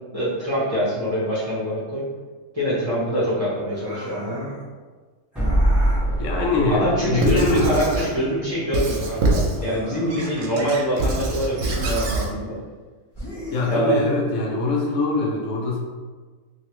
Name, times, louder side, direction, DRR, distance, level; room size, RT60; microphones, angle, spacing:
voice 1, 0.1-2.0 2.5-4.5 6.7-12.6 13.7-14.0, equal, 30° right, -9 dB, 1.0 m, -24 dB
sound 1, 3.7-4.6 5.3-6.1 7.3-8.3 9.6-10.7 11.5-12.4 13.1-14.2, equal, 20° left, 0.9 m, -37 dB
sound 2, 5.4-10.5, right 1 dB, ahead, 1.2 m, -26 dB
voice 2, 6.2-7.9 13.5-15.8, left 3 dB, 75° left, -1 dB, 1.0 m, -23 dB
Squeak / Writing, 7.2-8.1 8.7-9.6 10.1-12.3, right 2 dB, 75° right, 1.0 m, -24 dB
3.1 x 2.8 x 3.0 m, 1.4 s
omnidirectional pair, 1.4 m